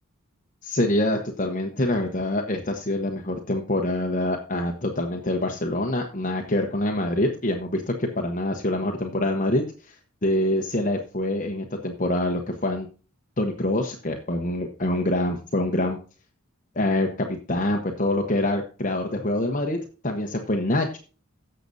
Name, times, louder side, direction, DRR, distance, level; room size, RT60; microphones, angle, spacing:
voice 1, 0.6-9.9 10.2-12.9 13.4-16.0 16.7-19.8 20.0-21.0, left 1 dB, 35° left, 2 dB, 1.0 m, -25 dB
17.0 x 6.7 x 2.7 m, 0.35 s
head